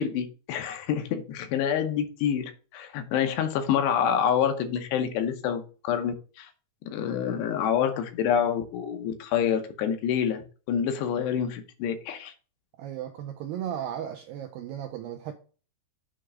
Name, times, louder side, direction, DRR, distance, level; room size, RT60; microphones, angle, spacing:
voice 1, 0.0-6.5 6.9-10.4 10.7-12.3, left 8 dB, 85° left, 3.1 m, -27 dB
voice 2, 12.8-15.3, right 10 dB, 85° right, 2.0 m, -35 dB
8.3 x 3.3 x 6.2 m
omnidirectional pair, 4.9 m